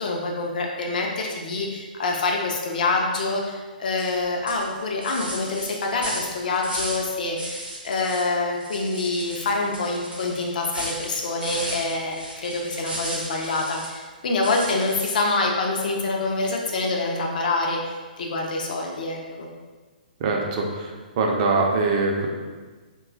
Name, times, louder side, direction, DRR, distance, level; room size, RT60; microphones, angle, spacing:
voice 1, 0.0-19.5, left 3 dB, 60° left, 0 dB, 0.4 m, -26 dB
sound 1, 4.0-4.2 4.5-7.1 7.4-8.3 8.6-14.0 14.4-15.3, right 1 dB, 90° right, 0.7 m, -35 dB
voice 2, 20.2-22.3, right 3 dB, 45° right, 0 dB, 0.4 m, -23 dB
2.9 x 2.2 x 2.4 m, 1.4 s
hypercardioid pair, 130°, 5 cm